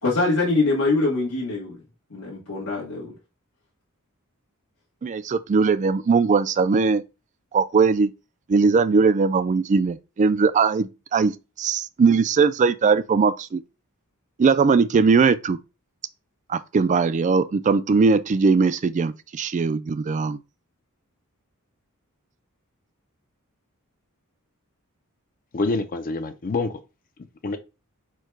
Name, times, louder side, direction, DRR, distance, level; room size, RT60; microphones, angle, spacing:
voice 1, 0.0-1.8 2.1-3.1, left 3 dB, 85° left, 1.2 m, -23 dB
voice 2, 5.0-7.0 7.5-8.1 8.5-13.6 14.4-15.6 16.5-20.4, right 5 dB, 35° right, 0.3 m, -20 dB
voice 3, 25.5-26.7 27.4-27.6, left 3 dB, 40° left, 0.5 m, -26 dB
4.5 x 2.2 x 4.5 m
head